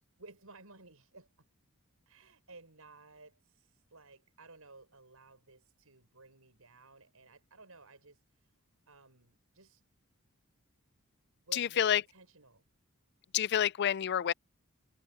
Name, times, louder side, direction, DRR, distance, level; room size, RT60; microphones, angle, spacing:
voice 1, 0.2-1.3 2.1-8.5 8.9-9.8 11.5-12.6, right 3 dB, 80° right, 6.3 m, -56 dB
voice 2, 11.5-12.0 13.3-14.3, left 10 dB, 50° left, 0.4 m, -28 dB
head